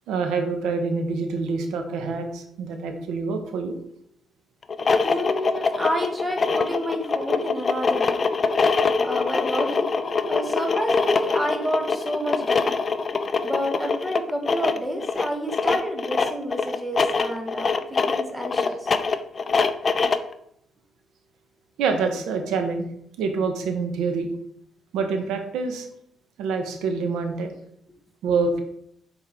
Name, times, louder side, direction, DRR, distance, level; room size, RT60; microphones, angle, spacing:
voice 1, 0.1-3.8 21.8-22.9 23.2-24.3 24.9-25.9 26.4-27.5 28.2-28.6, right 4 dB, 90° right, 5 dB, 1.0 m, -26 dB
sound 1, 4.6-20.3, left 4 dB, 40° left, 0.5 m, -24 dB
voice 2, 5.0-8.3 9.0-9.9 10.3-12.7 13.4-18.9, equal, 10° right, 3 dB, 1.3 m, -29 dB
6.9 x 4.4 x 3.6 m, 0.71 s
cardioid pair, 90°, 0 cm